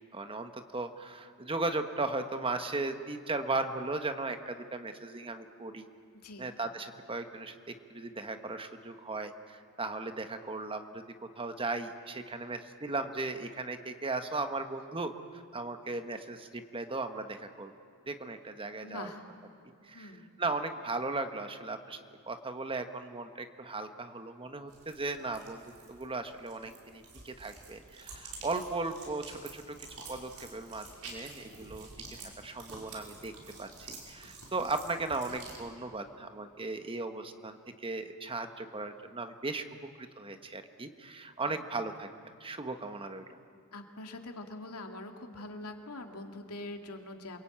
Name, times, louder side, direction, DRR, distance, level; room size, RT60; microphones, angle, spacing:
voice 1, 0.1-5.9 6.4-11.0 11.4-15.1 15.5-17.7 18.1-19.1 19.8-20.1 20.4-22.0 22.3-25.6 25.9-29.8 30.1-31.9 32.4-33.3 33.6-39.6 40.0-43.2, right 3 dB, 25° right, 8 dB, 1.3 m, -37 dB
voice 2, 6.1-6.5 18.8-19.3 19.9-20.3 41.5-41.6 43.7-47.4, left 2 dB, 90° left, 4 dB, 2.4 m, -43 dB
sound 1, 24.7-35.6, right 3 dB, 70° right, 5.4 m, -49 dB
28.0 x 22.5 x 8.8 m, 2.4 s
head